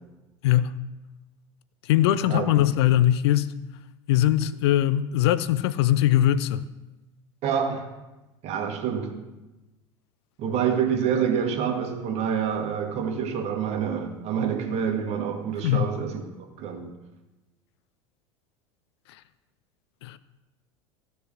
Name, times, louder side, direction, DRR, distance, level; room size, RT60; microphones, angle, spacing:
voice 1, 0.4-0.8 1.8-3.5 4.1-6.6 15.6-15.9 20.0-20.2, left 12 dB, 55° left, 0.5 m, -21 dB
voice 2, 7.4-7.9 8.4-9.2 10.4-16.2 16.6-16.9, right 7 dB, 45° right, 2.0 m, -27 dB
15.0 x 6.9 x 6.5 m
figure-of-eight pair, 75°, 16 cm